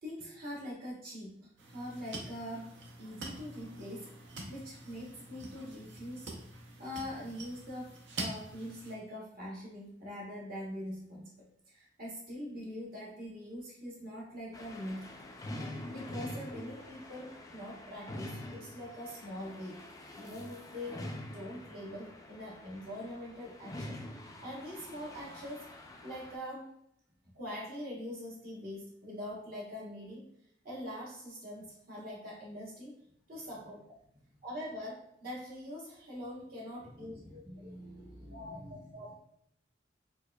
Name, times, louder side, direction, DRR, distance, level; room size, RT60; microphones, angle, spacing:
voice 1, 0.0-4.1 4.5-6.3 6.8-11.3 11.7-15.2 15.9-19.9 20.1-21.0 21.3-24.0 24.4-25.7 26.0-26.7 27.3-30.2 30.6-32.9 33.3-34.0 34.4-37.4 38.3-39.2, equal, 50° right, -5 dB, 1.0 m, -43 dB
sound 1, 1.6-8.9, right 2 dB, 70° right, 0.7 m, -45 dB
sound 2, 14.5-26.4, left 1 dB, 20° left, 0.3 m, -45 dB
voice 2, 33.3-33.7 34.1-34.4 36.8-39.2, equal, 25° right, -6 dB, 1.0 m, -51 dB
4.4 x 2.4 x 2.2 m, 0.72 s
head